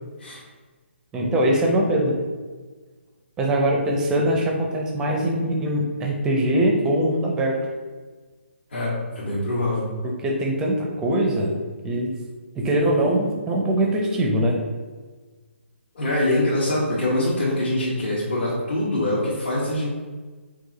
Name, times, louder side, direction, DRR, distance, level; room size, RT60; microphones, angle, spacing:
voice 1, 1.1-2.1 3.4-7.6 10.2-11.5 11.8-12.1 12.5-14.6, right 1 dB, 10° right, 0 dB, 0.5 m, -22 dB
voice 2, 8.7-9.9 15.9-19.9, left 1 dB, 60° left, -8 dB, 1.3 m, -24 dB
4.7 x 2.5 x 3.9 m, 1.4 s
hypercardioid pair, 160°, 7 cm